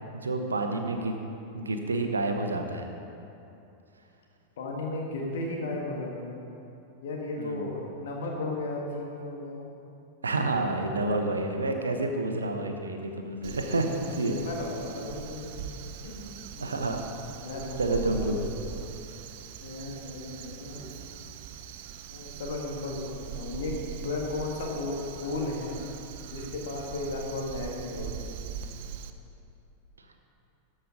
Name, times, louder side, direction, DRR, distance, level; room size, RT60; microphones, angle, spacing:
voice 1, 0.1-1.2 1.5-2.9 7.4-7.7 10.2-14.5 16.6-17.0 17.8-18.5, right 2 dB, 75° right, 5 dB, 0.8 m, -29 dB
voice 2, 4.6-6.5 7.0-9.7 13.4-13.7 14.0-15.7 16.0-16.3 16.6-16.8 17.3-18.8 19.6-21.0 22.1-25.8 26.3-28.3, left 2 dB, 60° left, -1 dB, 1.7 m, -35 dB
Crow, 13.4-29.1, right 8 dB, 50° right, 0.5 m, -41 dB
13.5 x 5.4 x 5.1 m, 2.8 s
figure-of-eight pair, 90°, 0 cm